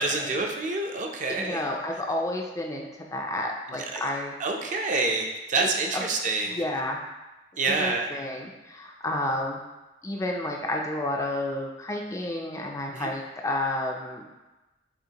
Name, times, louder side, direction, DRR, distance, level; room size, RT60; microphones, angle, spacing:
voice 1, 0.0-1.6 3.7-4.0 4.4-6.6 7.6-8.1 12.9-13.1, right 3 dB, 45° right, 2 dB, 0.5 m, -27 dB
voice 2, 1.4-4.3 5.6-5.7 5.9-6.0 6.5-7.0 7.7-9.6 10.0-14.2, left 1 dB, 20° left, 1 dB, 0.4 m, -30 dB
6.3 x 2.5 x 2.9 m, 1.1 s
head